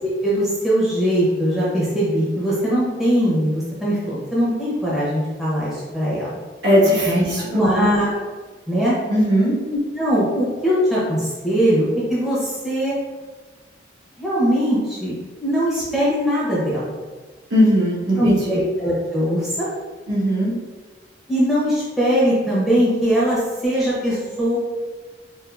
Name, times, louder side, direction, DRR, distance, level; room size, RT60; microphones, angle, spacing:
voice 1, 0.0-6.4 7.1-8.2 8.7-8.9 9.7-13.0 14.2-15.1 15.4-16.9 18.2-19.7 21.3-24.6, equal, ahead, -9 dB, 0.7 m, -21 dB
voice 2, 6.6-7.9 9.1-9.5 17.5-18.4 20.1-20.5, equal, 65° right, -8 dB, 1.2 m, -18 dB
3.7 x 2.5 x 2.3 m, 1.3 s
head